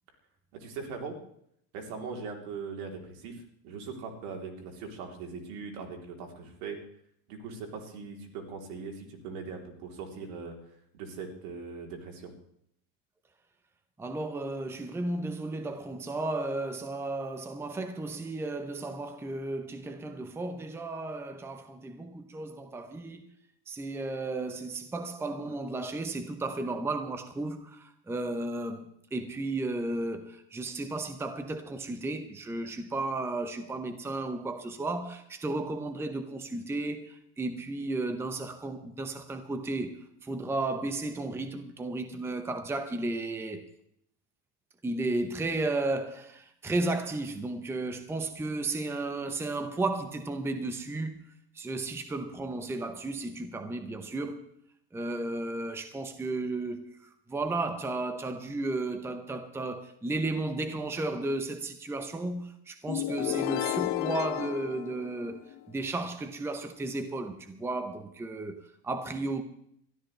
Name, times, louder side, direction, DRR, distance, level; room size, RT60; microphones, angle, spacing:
voice 1, 0.5-1.2 1.7-6.8 7.3-10.6 10.9-12.3, right 5 dB, 80° right, 3.5 m, -40 dB
voice 2, 14.0-23.3 23.7-28.8 29.1-43.7 44.8-51.2 51.6-54.4 54.9-57.0 57.3-69.4, right 2 dB, 5° right, 0.7 m, -34 dB
sound 1, 62.9-65.7, left 15 dB, 45° left, 0.6 m, -32 dB
22.0 x 13.0 x 3.3 m
cardioid pair, 155°, 43 cm